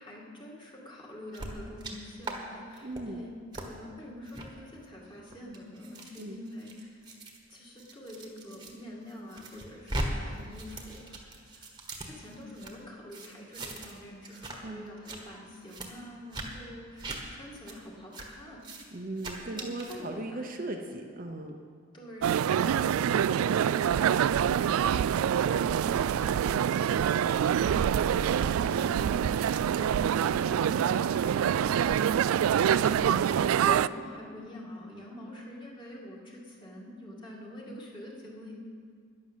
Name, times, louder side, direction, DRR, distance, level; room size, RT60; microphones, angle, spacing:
voice 1, 0.0-7.1 7.5-11.7 12.0-18.6 19.5-20.5 21.9-24.5 25.1-31.9 32.8-38.5, equal, 20° left, -3 dB, 2.2 m, -45 dB
sound 1, 1.3-1.9 2.2-2.4 2.7-3.0 3.5-3.7 4.3-4.5 5.1-8.7 9.1-10.1 10.3-12.7 13.1-14.0 14.2-14.6 14.9-15.2 15.7-15.9 16.3-16.5 17.0-17.2 17.7-17.8 18.1-18.3 18.6-18.8 19.2-20.0, right 1 dB, 20° right, 1.4 m, -39 dB
voice 2, 2.8-3.2 6.2-6.4 14.6-14.9 18.9-21.6, right 2 dB, 40° right, 3 dB, 0.8 m, -38 dB
sound 2, 22.2-33.9, right 9 dB, 80° right, 0.3 m, -26 dB
11.5 x 10.5 x 7.4 m, 2.1 s
head